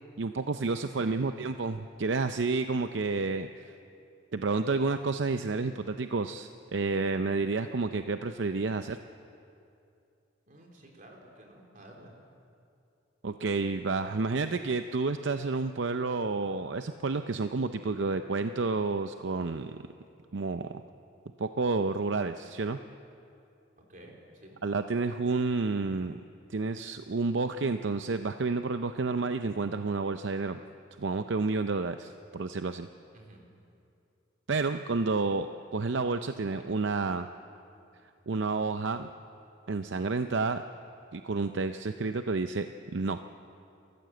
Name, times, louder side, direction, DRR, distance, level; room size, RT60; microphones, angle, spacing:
voice 1, 0.2-3.7 4.3-9.0 13.2-19.9 20.3-20.8 21.4-22.8 24.6-26.2 26.5-30.6 31.0-32.9 34.5-37.3 38.3-39.1 39.7-40.6 41.1-42.7 42.9-43.2, right 3 dB, 70° right, 8 dB, 0.6 m, -30 dB
voice 2, 0.9-1.3 10.5-12.1 23.8-24.6 33.1-33.5, right 1 dB, 45° right, 0 dB, 3.7 m, -52 dB
29.0 x 14.5 x 7.8 m, 2.6 s
head